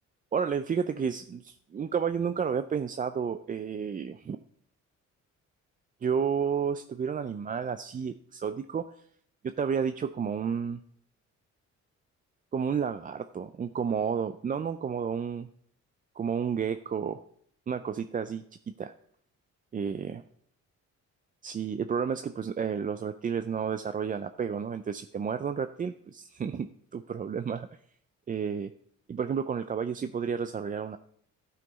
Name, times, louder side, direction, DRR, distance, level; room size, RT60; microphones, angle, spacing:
voice 1, 0.3-4.4 6.0-8.8 9.4-10.8 12.5-15.5 16.2-17.2 17.7-18.4 18.8-18.9 19.7-20.2 21.4-27.7 28.3-28.7 29.1-31.0, right 7 dB, 30° right, 10 dB, 0.4 m, -31 dB
12.5 x 5.8 x 4.0 m, 0.65 s
cardioid pair, 90°, 30 cm